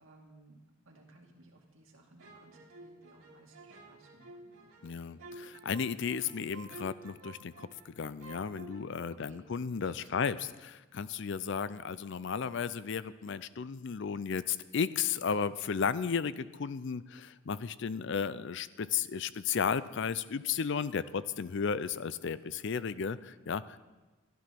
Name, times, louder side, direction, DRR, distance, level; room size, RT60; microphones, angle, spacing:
voice 1, 0.0-5.1 9.2-9.5 9.8-10.4, right 2 dB, 65° right, 0 dB, 2.3 m, -60 dB
sound 1, 2.2-7.9 8.2-8.8, right 2 dB, 80° right, 2.4 m, -51 dB
voice 2, 4.8-23.8, left 6 dB, 55° left, 16 dB, 0.4 m, -34 dB
12.5 x 12.0 x 5.9 m, 1.2 s
head